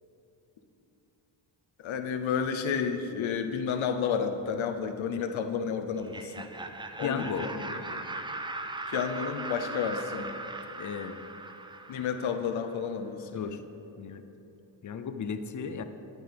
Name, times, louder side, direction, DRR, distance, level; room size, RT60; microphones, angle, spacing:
voice 1, 1.8-6.5 7.0-8.0 8.9-10.3 11.9-13.6, left 6 dB, 75° left, 7 dB, 0.8 m, -31 dB
Laughter, 5.9-12.7, right 2 dB, 10° right, 0.3 m, -39 dB
voice 2, 7.0-7.5 10.7-11.2 13.3-13.6 14.0-14.2 14.8-15.8, left 6 dB, 40° left, 9 dB, 0.6 m, -35 dB
10.0 x 9.5 x 3.5 m, 3.0 s
cardioid pair, 85°, 48 cm